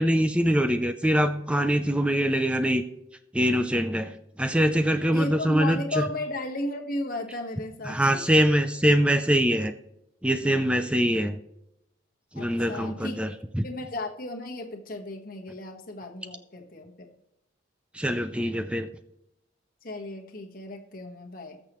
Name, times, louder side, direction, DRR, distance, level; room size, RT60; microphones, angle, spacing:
voice 1, 0.0-2.8 3.3-6.1 7.8-9.7 10.2-11.4 12.3-13.6 17.9-18.9, equal, 5° right, 8 dB, 0.4 m, -23 dB
voice 2, 5.1-8.2 12.3-13.3 13.6-17.1 19.8-21.6, left 2 dB, 45° left, 2 dB, 1.4 m, -34 dB
20.0 x 6.7 x 3.1 m, 0.85 s
head